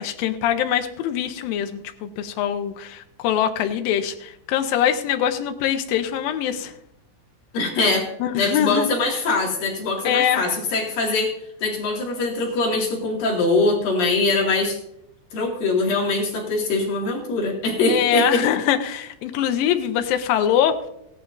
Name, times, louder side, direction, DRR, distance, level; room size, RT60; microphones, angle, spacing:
voice 1, 0.0-6.7 8.2-8.9 10.0-10.5 17.9-20.8, left 10 dB, 85° left, 7 dB, 2.0 m, -23 dB
voice 2, 7.5-8.1 8.4-11.3 11.6-14.8 15.3-18.4, left 3 dB, 55° left, -2 dB, 3.6 m, -22 dB
17.0 x 12.0 x 2.6 m, 0.81 s
omnidirectional pair, 5.1 m